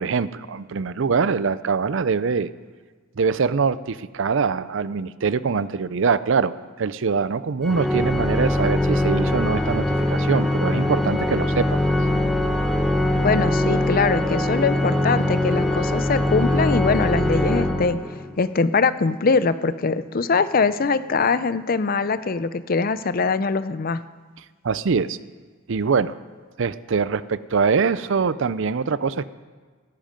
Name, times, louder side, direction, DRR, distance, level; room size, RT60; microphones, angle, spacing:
voice 1, 0.0-2.5 3.2-6.5 6.8-11.8 24.6-25.2 25.7-26.1 26.6-29.3, right 5 dB, 65° right, 16 dB, 0.5 m, -23 dB
Organ, 7.6-18.4, left 1 dB, ahead, 1.1 m, -22 dB
voice 2, 13.2-18.0 18.4-24.0, left 4 dB, 45° left, 14 dB, 0.5 m, -22 dB
17.0 x 14.5 x 5.2 m, 1.4 s
head